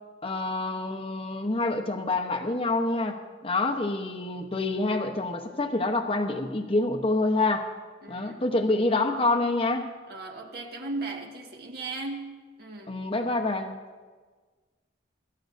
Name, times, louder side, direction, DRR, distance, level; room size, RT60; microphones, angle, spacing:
voice 1, 0.2-3.2 3.4-7.7 8.1-9.9 12.9-13.8, left 2 dB, 30° left, 3 dB, 0.9 m, -27 dB
voice 2, 8.0-8.4 10.1-13.0, right 2 dB, 55° right, 1 dB, 1.7 m, -37 dB
23.0 x 13.5 x 2.6 m, 1.4 s
head